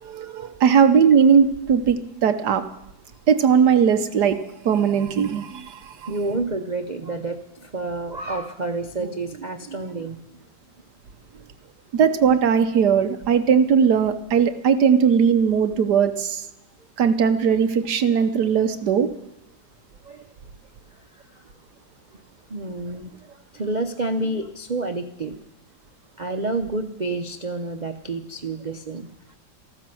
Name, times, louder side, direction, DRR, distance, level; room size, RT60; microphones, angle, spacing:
voice 1, 0.0-2.6 3.3-6.1 11.9-16.4 17.0-19.1, right 7 dB, 65° right, 9 dB, 1.4 m, -19 dB
voice 2, 6.1-10.2 20.0-20.3 21.3-21.4 22.5-25.3 26.2-29.1, right 2 dB, 85° right, 7 dB, 0.4 m, -29 dB
14.0 x 13.0 x 7.7 m, 0.82 s
omnidirectional pair, 2.0 m